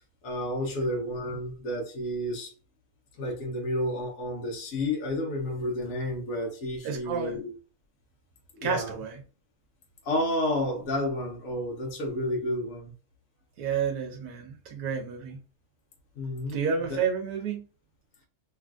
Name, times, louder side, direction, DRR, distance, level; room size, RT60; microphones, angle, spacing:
voice 1, 0.2-2.5 3.2-7.5 8.5-8.9 10.0-12.9 16.1-16.6 16.9-17.0, left 1 dB, 65° left, 1.3 m, -31 dB
voice 2, 6.8-7.4 8.6-9.2 13.6-15.4 16.5-17.7, right 6 dB, 80° right, 1.3 m, -30 dB
3.3 x 2.5 x 2.3 m
omnidirectional pair, 1.6 m